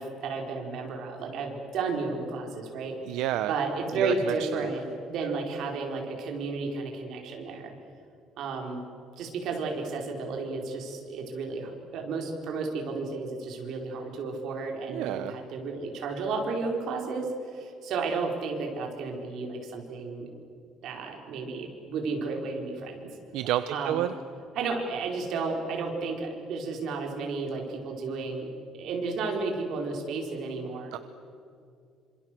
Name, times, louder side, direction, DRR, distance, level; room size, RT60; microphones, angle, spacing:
voice 1, 0.0-3.0 3.5-7.7 8.4-8.8 9.2-20.3 20.8-23.1 23.7-24.1 24.5-28.5 28.7-31.0, right 4 dB, 55° right, 2 dB, 4.6 m, -32 dB
voice 2, 3.1-3.5 4.0-4.7 5.2-5.3 14.9-15.4 23.3-24.1 30.9-31.0, right 12 dB, 75° right, 11 dB, 0.9 m, -30 dB
27.0 x 26.5 x 7.8 m, 2.4 s
cardioid pair, 180°, 0 cm